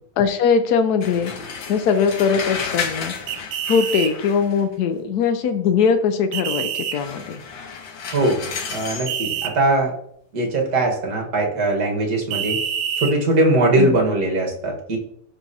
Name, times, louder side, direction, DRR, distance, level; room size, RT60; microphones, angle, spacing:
voice 1, 0.2-1.3 1.7-3.1 3.7-7.4 13.8-14.0, left 6 dB, 85° left, 8 dB, 0.8 m, -20 dB
sound 1, 1.0-4.7 6.9-9.2, left 5 dB, 65° left, 1.5 m, -32 dB
sound 2, 3.3-4.1 6.3-7.0 9.1-9.5 12.3-13.1, right 9 dB, 80° right, 1.6 m, -26 dB
voice 2, 8.7-9.9 10.3-12.6 13.0-15.0, right 2 dB, 50° right, 1 dB, 1.7 m, -20 dB
12.5 x 4.3 x 2.7 m, 0.71 s
omnidirectional pair, 2.4 m